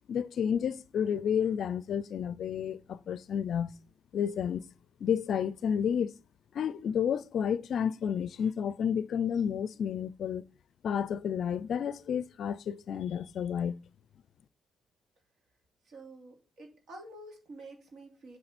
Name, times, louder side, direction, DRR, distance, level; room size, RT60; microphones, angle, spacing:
voice 1, 0.1-3.7 4.1-4.6 5.0-6.1 6.5-10.4 10.8-13.8, left 8 dB, 65° left, 0.4 m, -31 dB
voice 2, 15.8-18.4, right 2 dB, 60° right, 2.7 m, -49 dB
7.7 x 6.4 x 4.2 m
cardioid pair, 90°, 0 cm